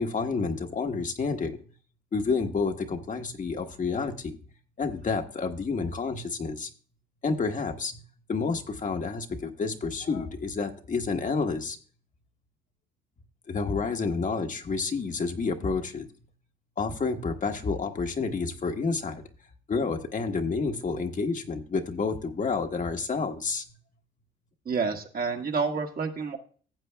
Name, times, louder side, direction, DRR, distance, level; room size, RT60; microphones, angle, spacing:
voice 1, 0.0-1.6 2.1-4.4 4.8-6.7 7.2-8.0 8.3-11.8 13.5-16.1 16.8-19.2 19.7-23.6, left 4 dB, 40° left, 5 dB, 1.2 m, -29 dB
voice 2, 24.6-26.4, right 5 dB, 50° right, 3 dB, 1.6 m, -29 dB
15.0 x 7.9 x 2.3 m, 0.41 s
cardioid pair, 90°, 20 cm